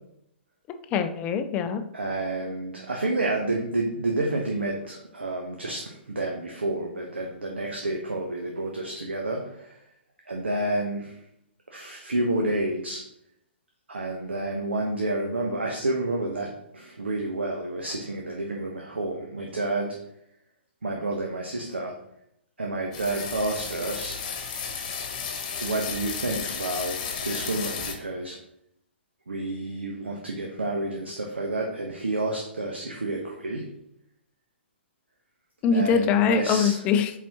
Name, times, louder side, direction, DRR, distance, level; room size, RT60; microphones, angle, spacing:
voice 1, 0.9-1.8 35.6-37.1, left 6 dB, 20° left, 8 dB, 0.5 m, -23 dB
voice 2, 1.9-9.8 10.3-11.2 11.7-13.0 13.9-20.0 20.8-21.9 22.6-24.2 25.6-28.4 29.3-33.7 35.7-36.8, right 2 dB, 70° right, 0 dB, 1.0 m, -29 dB
sound 1, 22.9-27.9, left 6 dB, 35° left, 1.2 m, -33 dB
8.4 x 4.0 x 2.9 m, 0.77 s
figure-of-eight pair, 120°, 6 cm